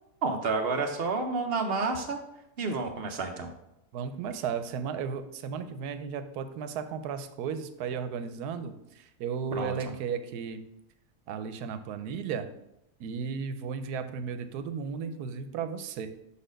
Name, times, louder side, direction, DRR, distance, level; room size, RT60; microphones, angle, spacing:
voice 1, 0.2-2.2 2.6-3.5 9.6-9.9, right 4 dB, 60° right, 5 dB, 0.6 m, -30 dB
voice 2, 3.9-10.6 11.3-12.5 13.0-16.1, right 6 dB, 85° right, 10 dB, 1.1 m, -34 dB
5.5 x 4.2 x 5.1 m, 0.84 s
omnidirectional pair, 1.6 m